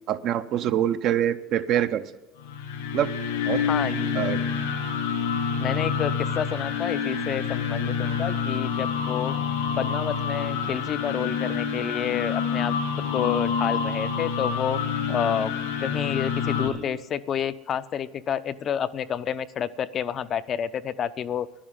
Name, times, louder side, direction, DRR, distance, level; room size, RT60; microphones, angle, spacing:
voice 1, 0.1-2.0 2.9-3.1 3.5-3.6 4.1-4.4, right 10 dB, 55° right, 10 dB, 0.7 m, -25 dB
sound 1, 2.4-16.7, left 6 dB, 85° left, 2.2 m, -27 dB
voice 2, 3.7-4.4 5.6-9.4 9.8-12.8 13.1-14.8 15.1-15.5 15.8-21.5, left 8 dB, 45° left, 13 dB, 0.5 m, -29 dB
11.0 x 10.0 x 7.3 m, 1.0 s
hypercardioid pair, 75°, 0 cm